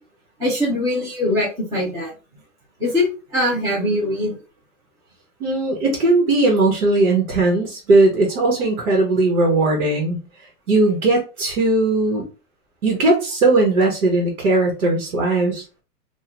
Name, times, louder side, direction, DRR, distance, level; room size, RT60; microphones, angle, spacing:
voice 1, 0.4-2.1 2.8-3.1 3.3-4.3, left 1 dB, 10° right, -6 dB, 0.8 m, -21 dB
voice 2, 5.4-10.2 10.7-12.2 12.8-15.6, right 2 dB, 60° right, 0 dB, 1.5 m, -18 dB
3.7 x 2.7 x 3.0 m, 0.32 s
hypercardioid pair, 170°, 46 cm